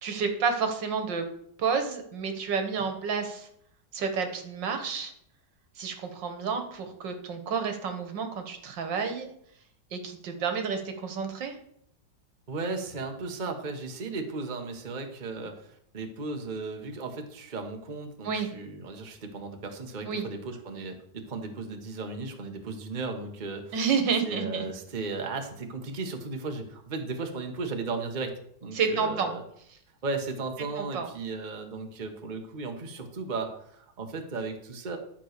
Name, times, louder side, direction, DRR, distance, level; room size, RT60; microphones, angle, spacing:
voice 1, 0.0-1.3 1.6-3.5 3.9-5.1 5.8-9.3 9.9-11.6 18.2-18.5 20.1-20.3 23.7-24.7 28.7-29.3 30.8-31.1, right 5 dB, 80° right, 6 dB, 2.0 m, -30 dB
voice 2, 12.5-23.8 24.3-28.3 28.6-29.4 30.0-35.0, right 3 dB, 30° right, 4 dB, 1.1 m, -35 dB
11.5 x 4.6 x 6.6 m, 0.69 s
omnidirectional pair, 1.9 m